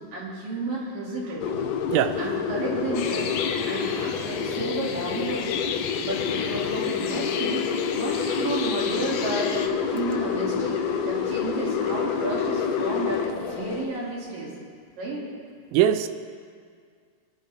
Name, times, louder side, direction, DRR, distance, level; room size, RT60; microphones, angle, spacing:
voice 1, 0.1-1.4 2.2-3.4 3.6-7.7 7.9-10.8 11.0-14.5 15.0-15.3, right 2 dB, 60° right, -5 dB, 4.1 m, -32 dB
sound 1, 1.4-13.9, left 6 dB, 75° left, 2.1 m, -28 dB
sound 2, 2.9-9.7, left 7 dB, 90° left, 2.9 m, -34 dB
voice 2, 15.7-16.1, right 11 dB, 80° right, 11 dB, 2.1 m, -20 dB
22.5 x 11.0 x 3.5 m, 2.1 s
omnidirectional pair, 4.5 m